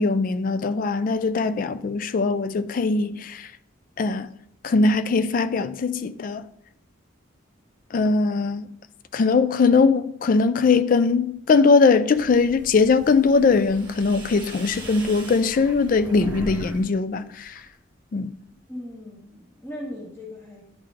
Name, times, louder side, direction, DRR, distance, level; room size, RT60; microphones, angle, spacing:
voice 1, 0.0-3.5 4.0-4.3 4.6-6.4 7.9-8.7 9.1-17.6 18.1-18.3, left 4 dB, 45° left, 0.3 m, -21 dB
sound 1, 12.1-16.8 17.1-17.8, right 1 dB, 25° right, 1.5 m, -39 dB
voice 2, 18.7-20.6, left 1 dB, 15° left, 1.3 m, -38 dB
10.0 x 3.8 x 3.4 m
head